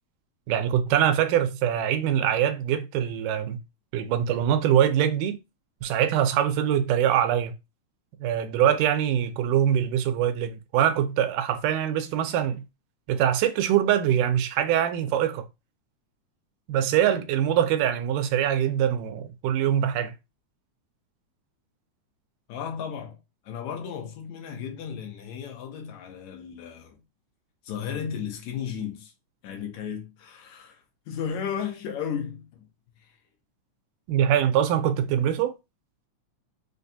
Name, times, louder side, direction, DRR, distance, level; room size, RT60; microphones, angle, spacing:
voice 1, 0.5-3.6 3.9-5.4 5.8-7.5 8.2-12.6 13.1-15.4 16.7-20.1 34.1-35.6, right 10 dB, 90° right, 2.1 m, -23 dB
voice 2, 22.5-23.2 23.4-27.0 27.6-29.1 29.4-32.7 33.0-33.2, left 7 dB, 75° left, 2.0 m, -34 dB
5.2 x 2.3 x 2.6 m
omnidirectional pair, 3.5 m